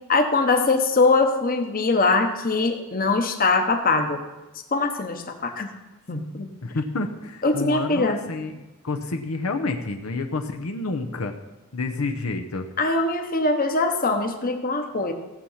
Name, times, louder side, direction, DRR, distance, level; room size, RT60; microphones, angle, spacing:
voice 1, 0.1-4.2 4.7-5.7 6.1-6.5 7.4-8.2 12.8-15.1, left 3 dB, 45° left, 5 dB, 1.1 m, -22 dB
voice 2, 6.6-11.3 11.7-12.7, left 3 dB, 80° left, 5 dB, 0.8 m, -29 dB
16.0 x 7.2 x 5.7 m, 1.1 s
head